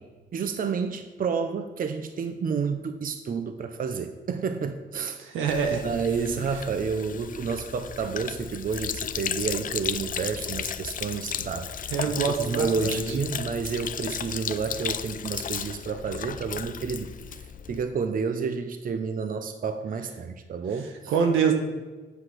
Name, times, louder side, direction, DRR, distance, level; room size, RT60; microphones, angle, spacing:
voice 1, 0.3-5.2 5.7-12.1 12.4-17.1 17.7-21.1, right 5 dB, 45° right, 9 dB, 0.8 m, -30 dB
voice 2, 5.2-5.8 11.9-13.1 21.1-21.5, right 6 dB, 85° right, 4 dB, 1.7 m, -25 dB
Sink (filling or washing), 5.5-17.8, left 8 dB, 45° left, 0.5 m, -34 dB
8.1 x 7.8 x 6.0 m, 1.3 s
cardioid pair, 90°, 20 cm